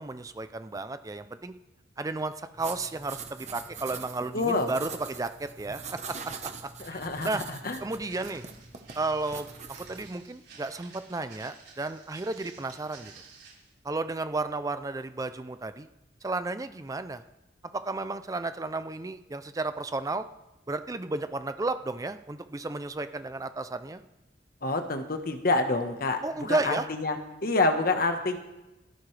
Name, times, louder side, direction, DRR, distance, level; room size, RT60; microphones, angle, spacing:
voice 1, 0.0-1.5 2.0-6.2 6.6-7.4 7.8-8.4 8.9-9.5 9.9-13.1 13.8-15.9 16.2-17.2 17.7-20.2 20.7-24.0 26.2-26.9, right 3 dB, 20° right, 10 dB, 0.4 m, -33 dB
sound 1, 2.6-10.1, right 5 dB, 40° right, 1.1 m, -43 dB
voice 2, 4.3-4.7 6.8-7.8 24.6-28.4, left 2 dB, 50° left, 6 dB, 1.3 m, -27 dB
Walk footsteps, 8.0-13.7, right 5 dB, 80° right, 6.4 m, -52 dB
17.0 x 14.0 x 3.3 m, 1.0 s
head